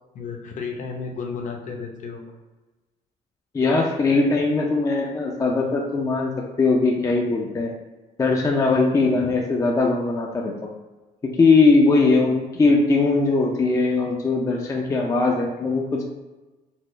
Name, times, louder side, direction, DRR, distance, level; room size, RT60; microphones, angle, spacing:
voice 1, 0.0-2.3 9.2-9.4, left 5 dB, 50° left, 2 dB, 0.7 m, -33 dB
voice 2, 3.5-6.3 6.6-7.7 8.2-10.7 11.4-16.0, left 3 dB, 20° left, 0 dB, 0.4 m, -20 dB
4.4 x 2.0 x 3.1 m, 1.2 s
cardioid pair, 110°, 17 cm